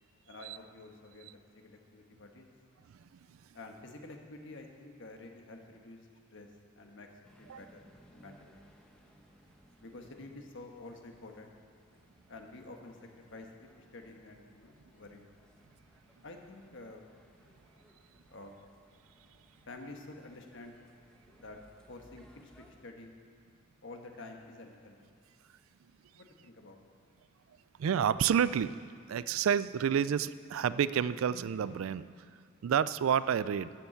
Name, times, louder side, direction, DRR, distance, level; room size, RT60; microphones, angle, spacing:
voice 1, 0.3-2.5 3.5-6.0 6.3-6.5 6.8-7.1 7.4-7.9 8.1-8.6 9.8-11.5 12.3-15.3 16.2-17.1 18.3-18.6 19.7-20.8 21.4-21.6 21.9-23.1 23.8-25.0 26.1-26.8, left 2 dB, 65° left, 3 dB, 1.3 m, -49 dB
sound 1, 7.2-22.7, equal, 5° left, 1.0 m, -63 dB
voice 2, 27.8-28.8 29.1-32.3 32.6-33.7, right 8 dB, 75° right, 17 dB, 0.3 m, -29 dB
12.5 x 7.0 x 7.8 m, 2.3 s
head